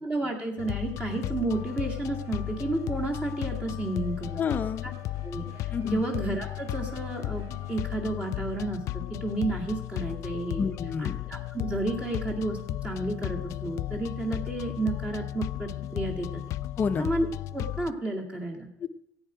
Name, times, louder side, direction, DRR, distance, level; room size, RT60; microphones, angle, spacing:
voice 1, 0.0-4.4 4.8-4.9 5.2-8.8 9.1-10.6 11.0-12.6 12.8-16.4 17.0-17.3 17.5-18.7, right 2 dB, 15° right, 0 dB, 2.0 m, -31 dB
sound 1, 0.6-17.9, left 14 dB, 55° left, 0.3 m, -35 dB
sound 2, 1.5-7.8, right 3 dB, 85° right, 3.4 m, -54 dB
voice 2, 4.4-4.8 5.7-6.0 10.6-11.2 16.8-17.1 18.8-18.9, left 5 dB, 30° left, 8 dB, 0.8 m, -29 dB
15.5 x 9.0 x 5.0 m, 0.78 s
cardioid pair, 140°, 6 cm